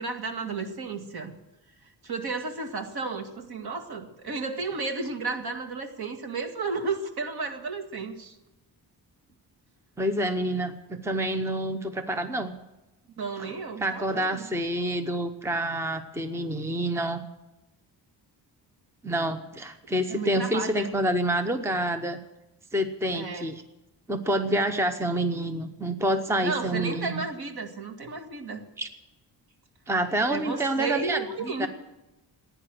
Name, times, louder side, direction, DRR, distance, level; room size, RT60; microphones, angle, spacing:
voice 1, 0.0-1.3 2.0-8.3 13.2-14.5 20.1-20.9 23.1-23.5 26.4-28.6 30.3-31.7, right 4 dB, 60° right, 5 dB, 2.1 m, -33 dB
voice 2, 10.0-12.5 13.4-13.5 13.8-17.2 19.0-22.2 22.7-23.6 24.1-27.1 28.8-28.9 29.9-31.7, right 1 dB, 5° right, 8 dB, 0.8 m, -28 dB
16.0 x 10.0 x 7.7 m, 0.97 s
wide cardioid pair, 170°, 42 cm